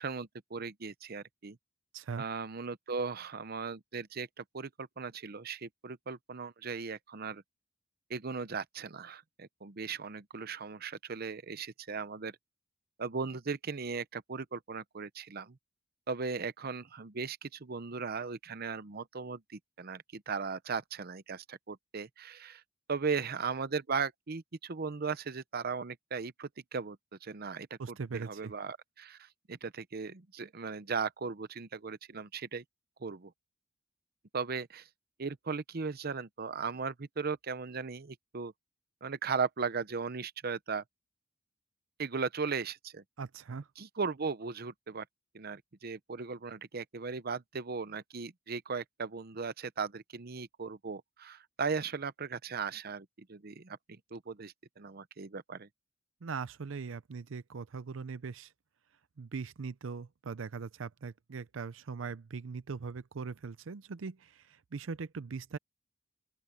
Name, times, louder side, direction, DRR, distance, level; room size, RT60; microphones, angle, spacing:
voice 1, 0.0-1.6 2.2-7.4 8.1-12.3 13.0-15.6 16.1-22.6 22.9-32.6 33.0-33.3 34.3-34.9 35.2-38.5 39.0-40.8 42.0-43.0 43.8-45.0 45.3-55.7, right 5 dB, 55° right, 0.8 m, -37 dB
voice 2, 1.9-2.2 27.8-28.5 43.2-43.7 56.2-58.5 59.2-65.6, right 5 dB, 90° right, 0.6 m, -40 dB
open air
head